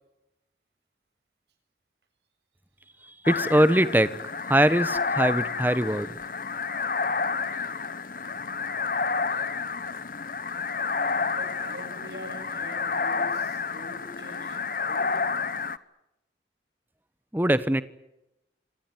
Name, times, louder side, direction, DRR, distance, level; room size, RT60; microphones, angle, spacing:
voice 1, 3.0-4.1 4.4-6.1 17.3-17.8, right 1 dB, 10° right, 15 dB, 1.0 m, -22 dB
sound 1, 3.3-15.8, left 5 dB, 50° left, 0.9 m, -30 dB
voice 2, 11.3-15.4, equal, 75° right, 6 dB, 7.4 m, -44 dB
26.5 x 19.0 x 9.1 m, 0.91 s
head